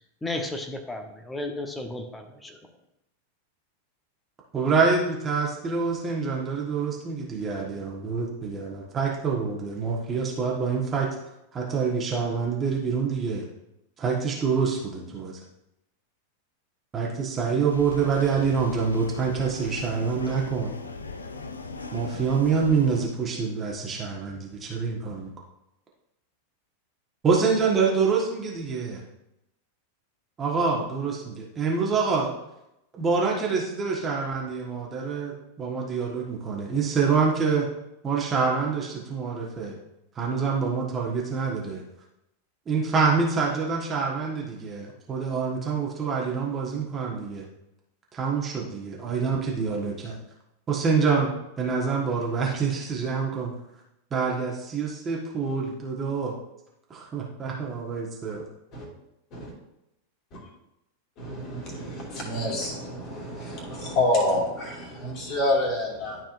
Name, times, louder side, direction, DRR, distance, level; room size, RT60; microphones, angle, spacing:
voice 1, 0.2-2.6, left 2 dB, 10° left, 4 dB, 0.9 m, -33 dB
voice 2, 4.5-11.1 11.5-13.4 14.0-15.4 16.9-20.7 21.9-25.3 27.2-29.0 30.4-32.4 32.9-37.7 38.0-39.8 40.1-41.8 42.7-47.4 48.1-50.2 50.7-51.3 51.6-53.5 54.1-56.3 56.9-58.4, right 5 dB, 20° right, -2 dB, 1.4 m, -26 dB
sound 1, 17.7-23.1, left 4 dB, 75° left, 0.5 m, -38 dB
voice 3, 61.2-66.2, left 1 dB, 35° left, -2 dB, 2.4 m, -28 dB
12.0 x 4.4 x 2.6 m, 0.85 s
figure-of-eight pair, 90°, 0 cm